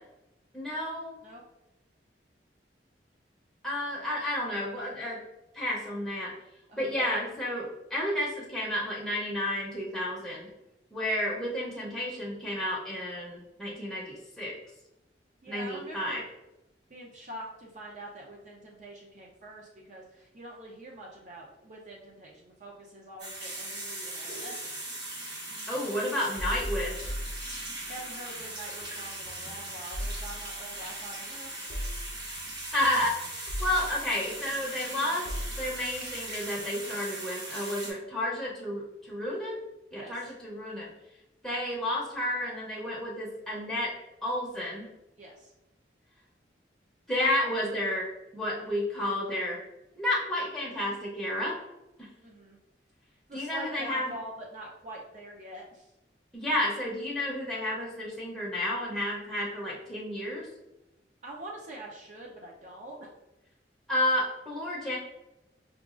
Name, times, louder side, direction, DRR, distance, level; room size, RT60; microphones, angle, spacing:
voice 1, 0.5-1.2 3.6-5.2 5.5-6.3 6.8-10.5 10.9-14.5 15.4-16.2 25.7-27.1 32.7-35.3 35.6-39.6 39.9-40.9 41.4-43.9 44.2-44.9 47.1-48.1 48.3-49.6 50.0-51.5 52.0-52.1 53.3-54.1 56.3-60.5 63.9-65.0, left 1 dB, ahead, -6 dB, 0.6 m, -31 dB
voice 2, 6.7-7.2 15.4-16.3 16.9-24.9 27.7-31.8 39.9-40.2 45.2-45.5 52.2-52.6 53.3-55.9 61.2-63.1, right 1 dB, 45° right, -2 dB, 0.5 m, -45 dB
sound 1, 23.2-37.9, right 2 dB, 75° right, 1.2 m, -39 dB
sound 2, 26.4-28.1 28.4-37.0, equal, 45° left, 0.5 m, -39 dB
4.8 x 2.3 x 2.4 m, 0.93 s
head